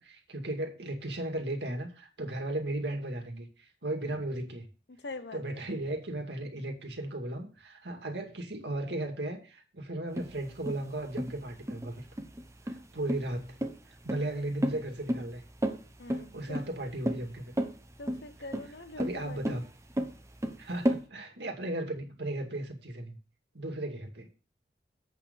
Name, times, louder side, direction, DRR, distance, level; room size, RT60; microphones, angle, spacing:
voice 1, 0.0-4.7 5.3-12.1 12.7-13.6 13.9-15.4 16.3-17.5 19.0-19.6 20.6-23.2 23.5-24.3, right 1 dB, 70° right, 2.2 m, -36 dB
voice 2, 4.9-5.7 16.0-16.6 18.0-19.6, left 2 dB, 70° left, 1.0 m, -44 dB
sound 1, 10.2-21.0, equal, 15° right, 0.8 m, -33 dB
8.1 x 6.6 x 5.3 m
head